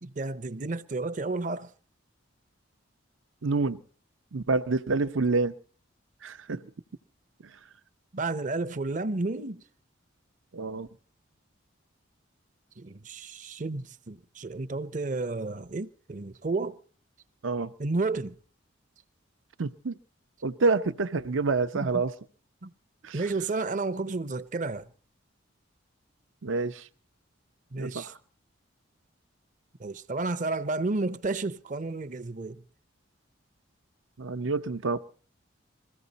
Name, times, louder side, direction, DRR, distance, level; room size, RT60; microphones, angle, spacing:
voice 1, 0.0-1.7 8.1-9.6 12.8-16.8 17.8-18.3 21.7-22.0 22.6-22.7 23.1-24.9 27.7-28.1 29.8-32.6, right 3 dB, 40° right, 0.7 m, -31 dB
voice 2, 3.4-3.8 4.3-5.5 6.2-6.6 10.5-10.9 17.4-17.7 19.6-19.9 20.4-22.1 23.0-23.2 26.4-26.9 27.8-28.1 34.2-35.0, right 3 dB, 80° right, 0.7 m, -27 dB
21.5 x 15.0 x 4.0 m
head